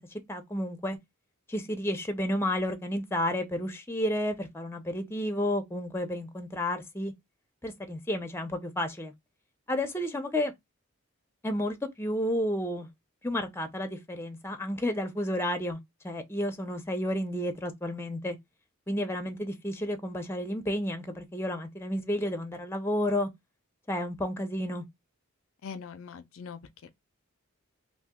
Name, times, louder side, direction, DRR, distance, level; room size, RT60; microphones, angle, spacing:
voice 1, 0.3-1.0 1.5-7.1 7.6-9.1 9.7-10.5 11.4-12.9 13.2-15.8 16.0-18.4 18.9-23.3 23.9-24.8, left 1 dB, 10° left, 0.5 m, -31 dB
voice 2, 25.6-26.9, left 6 dB, 65° left, 0.4 m, -42 dB
2.7 x 2.6 x 3.5 m
head